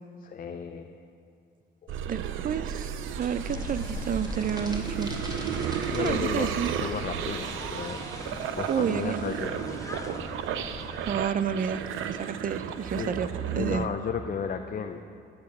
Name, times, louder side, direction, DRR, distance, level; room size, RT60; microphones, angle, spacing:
voice 1, 0.2-1.0 1.8-1.9 5.9-8.1 8.5-9.6 13.0-15.0, left 6 dB, 45° left, 6 dB, 0.7 m, -34 dB
sound 1, 1.9-13.9, right 8 dB, 90° right, 0.7 m, -33 dB
voice 2, 2.1-5.1 5.9-6.7 8.7-9.3 11.0-13.3 13.6-13.9, right 8 dB, 45° right, 13 dB, 0.6 m, -30 dB
sound 2, 3.2-9.4, right 1 dB, 20° right, 2.8 m, -43 dB
sound 3, 3.5-11.1, left 2 dB, 15° left, 1.3 m, -41 dB
14.5 x 8.7 x 6.0 m, 2.4 s
cardioid pair, 90°, 20 cm